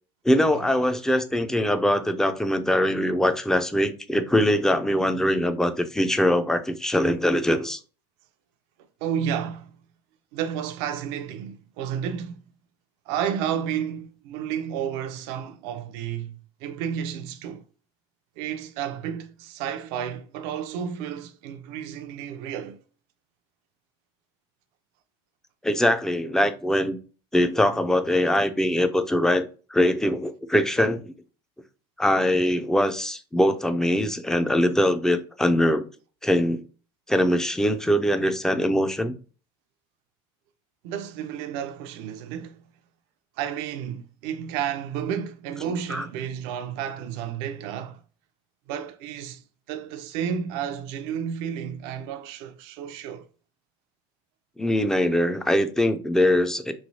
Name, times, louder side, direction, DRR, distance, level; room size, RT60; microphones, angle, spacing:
voice 1, 0.2-7.8 25.6-27.0 27.3-29.4 29.7-31.1 32.0-35.8 36.2-36.6 37.1-39.2 45.9-46.0 54.6-56.7, left 1 dB, 5° left, 0.4 m, -22 dB
voice 2, 9.0-9.8 10.3-12.4 13.1-17.6 18.4-22.8 40.8-42.6 43.4-48.0 48.7-53.3, right 8 dB, 75° right, 0.5 m, -31 dB
3.2 x 2.7 x 2.6 m
supercardioid pair, 105°, 13 cm